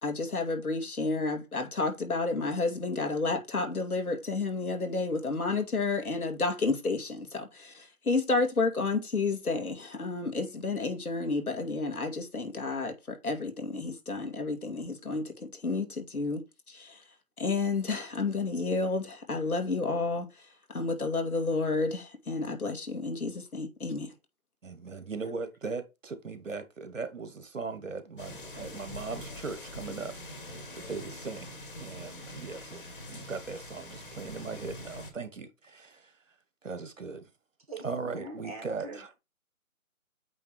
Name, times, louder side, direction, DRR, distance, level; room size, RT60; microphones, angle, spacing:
voice 1, 0.0-17.0 17.4-24.1, left 3 dB, 85° left, 2.3 m, -31 dB
voice 2, 24.6-36.2 36.6-37.3 37.8-39.1, right 4 dB, 60° right, 1.4 m, -39 dB
sound 1, 28.2-35.1, left 1 dB, 35° left, 2.1 m, -44 dB
voice 3, 37.7-39.1, right 2 dB, 25° right, 2.2 m, -43 dB
8.6 x 3.1 x 4.6 m
figure-of-eight pair, 165°, 43 cm